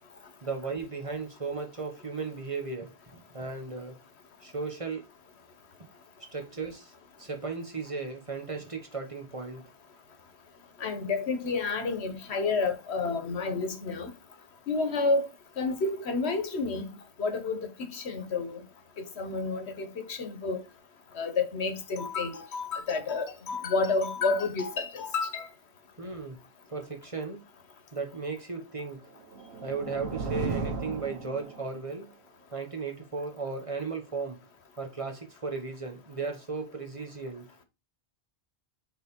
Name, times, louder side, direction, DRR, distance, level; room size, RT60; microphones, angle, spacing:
voice 1, 0.4-4.0 4.4-5.1 5.8-5.9 6.3-6.9 7.2-9.7 26.0-26.4 26.7-27.4 27.9-29.0 29.6-32.1 32.5-34.5 34.8-37.4, right 4 dB, 30° right, 1.3 m, -36 dB
voice 2, 10.8-14.1 14.7-15.3 15.6-16.9 17.2-18.6 19.2-20.6 21.2-25.5, left 4 dB, 90° left, 1.4 m, -30 dB
sound 1, 29.0-31.9, right 4 dB, 75° right, 1.2 m, -35 dB
6.6 x 4.0 x 4.4 m
omnidirectional pair, 1.1 m